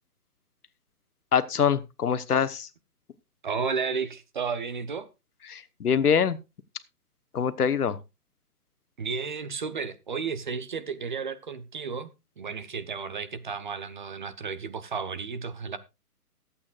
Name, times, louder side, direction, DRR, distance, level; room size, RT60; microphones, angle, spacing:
voice 1, 1.3-2.7 5.5-6.4 7.3-8.0, left 7 dB, 80° left, 1.2 m, -24 dB
voice 2, 3.4-5.1 9.0-12.1 12.4-15.8, right 5 dB, 30° right, 0.7 m, -33 dB
22.5 x 8.6 x 2.4 m
hypercardioid pair, 155°, 45 cm